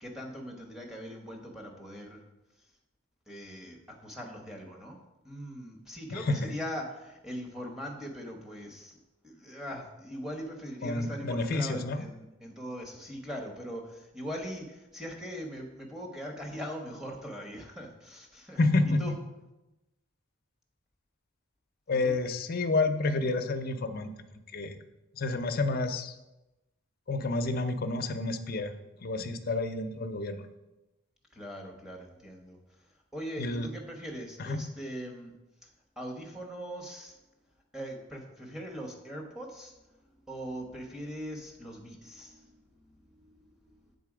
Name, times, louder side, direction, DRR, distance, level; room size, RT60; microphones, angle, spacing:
voice 1, 0.0-2.2 2.6-2.7 3.3-18.6 18.8-19.1 21.9-22.2 31.3-35.3 35.6-35.7 36.0-37.2 37.7-44.0, equal, 5° right, -1 dB, 0.9 m, -41 dB
voice 2, 6.1-6.5 10.8-12.0 18.6-19.0 21.9-24.2 24.5-24.8 25.1-26.2 27.1-28.7 29.0-30.5 33.4-33.7 34.4-34.7, left 2 dB, 45° left, 7 dB, 0.5 m, -29 dB
7.5 x 3.9 x 4.9 m, 0.98 s
head